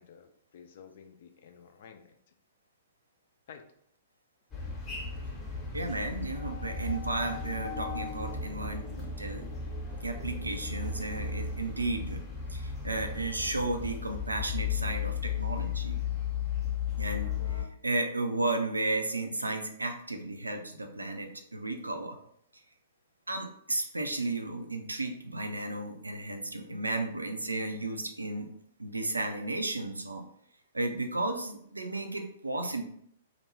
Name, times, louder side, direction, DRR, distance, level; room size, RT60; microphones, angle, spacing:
voice 1, 0.0-2.3 3.5-3.7, left 7 dB, 50° left, 7 dB, 0.3 m, -52 dB
sound 1, 4.5-17.6, left 6 dB, 20° left, 0.7 m, -35 dB
voice 2, 5.7-9.4 10.0-12.2 12.5-15.9 17.0-22.2 23.3-28.5 28.8-30.2 30.7-32.8, right 2 dB, 80° right, 5 dB, 0.4 m, -33 dB
2.4 x 2.1 x 3.1 m, 0.69 s
figure-of-eight pair, 110°, 0 cm